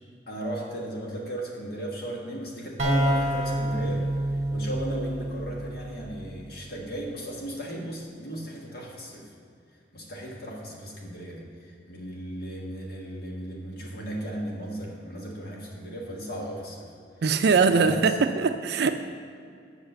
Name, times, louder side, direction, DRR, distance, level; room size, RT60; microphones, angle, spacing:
voice 1, 0.3-4.1 4.5-9.3 9.9-16.9 17.6-18.0, right 1 dB, 55° left, -2 dB, 1.4 m, -36 dB
sound 1, 2.8-6.4, right 1 dB, 40° right, 1.4 m, -28 dB
voice 2, 17.2-19.0, right 5 dB, 60° right, 8 dB, 0.4 m, -22 dB
8.1 x 5.9 x 6.6 m, 2.4 s
head